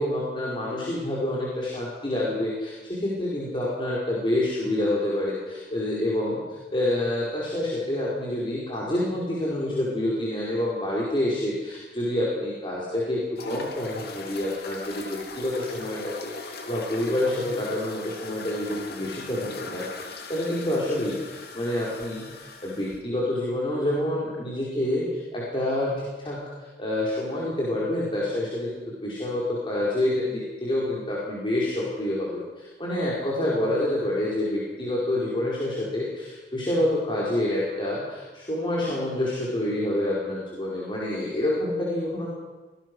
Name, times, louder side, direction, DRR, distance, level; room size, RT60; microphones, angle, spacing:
voice 1, 0.0-25.1 25.3-26.4 26.8-42.3, left 1 dB, 30° left, -6 dB, 4.8 m, -27 dB
sound 1, 13.4-23.0, left 3 dB, 60° left, 2.6 m, -40 dB
25.5 x 18.5 x 6.3 m, 1.2 s
head